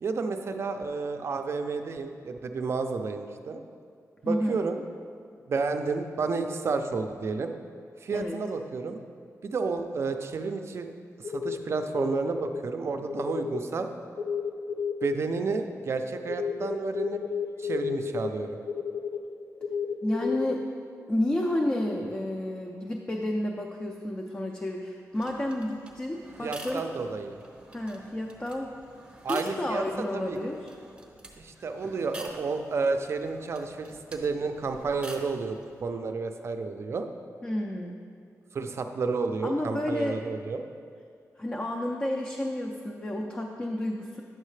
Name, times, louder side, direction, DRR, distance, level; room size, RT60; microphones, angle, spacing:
voice 1, 0.0-3.6 4.2-4.8 5.5-7.5 8.0-9.0 9.4-10.9 11.2-13.9 15.0-17.2 17.6-18.6 26.4-27.4 29.2-29.8 30.1-30.4 31.4-37.1 38.5-40.6, right 4 dB, 50° right, 6 dB, 0.4 m, -31 dB
voice 2, 4.3-4.6 8.1-8.4 20.0-20.6 21.1-26.8 27.7-28.7 29.3-30.7 31.8-31.9 37.4-38.0 39.4-40.2 41.4-44.2, left 1 dB, 20° left, 0 dB, 0.4 m, -31 dB
sound 1, 11.2-12.7 13.1-13.6 14.2-20.6 21.3-21.6, left 6 dB, 80° left, 0.4 m, -32 dB
sound 2, 25.1-35.8, right 1 dB, 20° right, 0.7 m, -48 dB
8.9 x 6.4 x 3.2 m, 2.2 s
wide cardioid pair, 160°, 6 cm